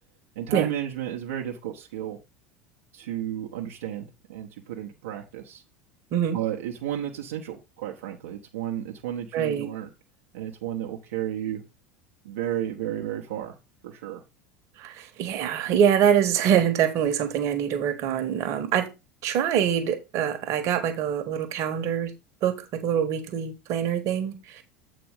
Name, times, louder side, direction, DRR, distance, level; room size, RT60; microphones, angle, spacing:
voice 1, 0.3-2.2 2.9-5.6 6.3-9.9 10.3-11.6 12.2-13.6 13.8-14.2, right 11 dB, 65° right, 1.1 m, -33 dB
voice 2, 9.3-9.7 14.8-18.9 19.2-22.1 22.4-24.6, right 9 dB, 45° right, 1.4 m, -24 dB
7.9 x 4.2 x 4.9 m
figure-of-eight pair, 75°, 8 cm